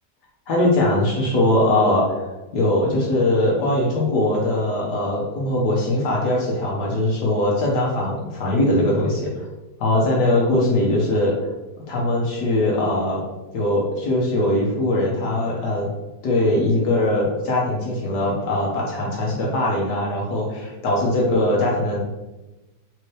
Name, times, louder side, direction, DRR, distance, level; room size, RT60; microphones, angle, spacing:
voice 1, 0.5-2.2 2.5-9.3 9.8-11.3 11.9-13.2 13.5-15.9 16.2-22.0, left 1 dB, 70° left, -3 dB, 1.5 m, -21 dB
4.6 x 3.5 x 3.2 m, 1.1 s
omnidirectional pair, 1.9 m